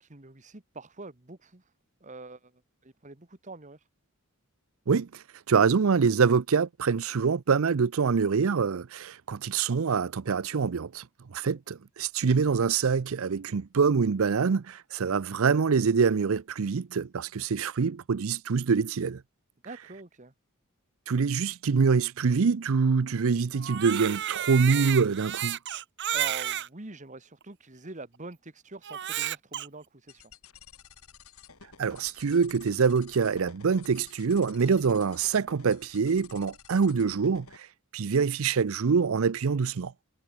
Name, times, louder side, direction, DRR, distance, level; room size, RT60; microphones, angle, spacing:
voice 1, 0.0-1.7 2.0-2.5 2.8-3.9 19.6-20.3 26.1-30.3, right 3 dB, 35° right, 1.6 m, -44 dB
voice 2, 4.9-5.2 5.5-11.0 11.3-19.2 21.1-25.6 31.8-37.5 37.9-39.9, right 5 dB, 70° right, 0.5 m, -25 dB
Crying sobbing, 23.5-26.7 27.4-27.5 28.8-29.7, right 11 dB, 55° right, 0.8 m, -32 dB
sound 1, 30.1-37.6, left 7 dB, 75° left, 3.2 m, -53 dB
head